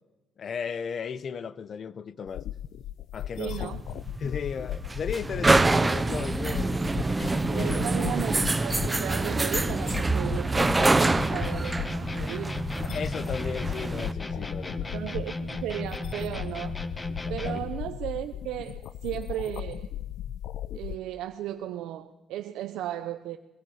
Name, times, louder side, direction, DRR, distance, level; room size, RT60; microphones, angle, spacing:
voice 1, 0.4-2.4 3.1-3.7 4.2-6.8 7.1-7.8 12.9-15.1 17.4-17.6, left 6 dB, 55° left, 0.8 m, -35 dB
sound 1, 2.3-21.0, left 11 dB, 80° left, 0.6 m, -37 dB
voice 2, 3.4-3.8 6.8-7.2 7.4-12.6 14.9-16.8 17.3-19.9 20.7-23.4, right 12 dB, 90° right, 0.8 m, -35 dB
Goods Lift Door, 3.5-14.1, right 3 dB, 20° right, 0.7 m, -26 dB
sound 2, 10.8-17.8, left 2 dB, 20° left, 1.4 m, -36 dB
21.5 x 16.5 x 8.0 m
cardioid pair, 90°, 0 cm